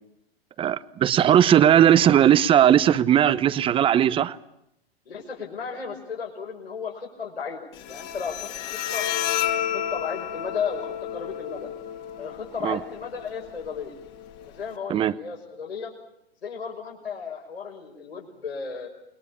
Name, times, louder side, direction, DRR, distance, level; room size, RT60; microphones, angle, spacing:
voice 1, 0.6-4.4 12.6-12.8 14.9-15.1, right 10 dB, 15° right, 0.9 m, -18 dB
voice 2, 5.1-9.1 9.7-11.7 12.2-14.0 14.5-15.9 16.4-18.9, left 6 dB, 75° left, 5.9 m, -34 dB
Bowed string instrument, 7.7-14.7, left 10 dB, 35° left, 2.4 m, -32 dB
29.5 x 21.5 x 7.0 m
figure-of-eight pair, 110°, 31 cm